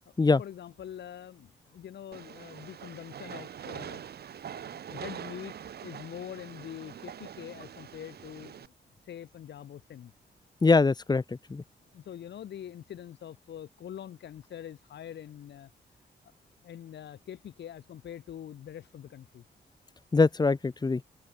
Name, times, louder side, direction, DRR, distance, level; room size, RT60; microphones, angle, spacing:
voice 1, 0.1-4.0 4.5-5.6 5.8-8.7 9.0-10.1 11.9-15.7 16.6-19.4, left 10 dB, 85° left, 1.7 m, -44 dB
Train, 2.1-8.7, right 9 dB, 65° right, 0.9 m, -44 dB
voice 2, 10.6-11.6 20.1-21.0, left 3 dB, 25° left, 0.8 m, -23 dB
cardioid pair, 95°, 17 cm